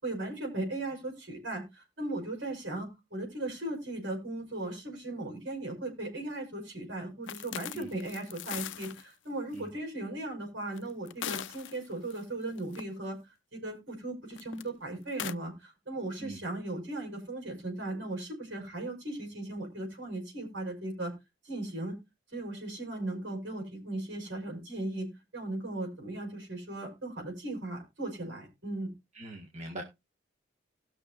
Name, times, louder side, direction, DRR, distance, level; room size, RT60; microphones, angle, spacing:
voice 1, 0.0-13.2 13.5-21.1 21.4-22.0 22.3-25.1 25.3-28.9, right 2 dB, 70° right, 1 dB, 5.7 m, -37 dB
sound 1, 7.3-9.0 9.6-9.7 10.7-12.2 12.6-12.8 14.3-14.6 15.1-15.3, left 10 dB, 70° left, 0.4 m, -39 dB
voice 2, 29.1-29.8, right 1 dB, 35° right, 0 dB, 1.7 m, -42 dB
19.0 x 6.4 x 2.6 m, 0.24 s
head